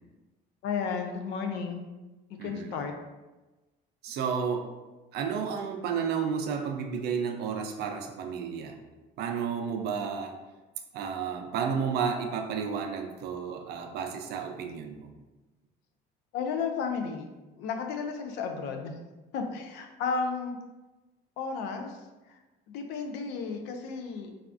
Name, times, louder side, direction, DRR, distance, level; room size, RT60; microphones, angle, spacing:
voice 1, 0.6-1.9 2.3-2.9 16.3-17.3 17.6-18.9 19.3-20.6 21.4-22.0 22.3-22.4 22.7-24.3, left 5 dB, 75° left, 5 dB, 0.5 m, -33 dB
voice 2, 2.4-2.8 4.0-4.7 5.1-8.8 9.2-10.4 10.9-15.1, right 6 dB, 60° right, 5 dB, 0.4 m, -32 dB
3.4 x 2.3 x 2.4 m, 1.1 s
cardioid pair, 125°, 18 cm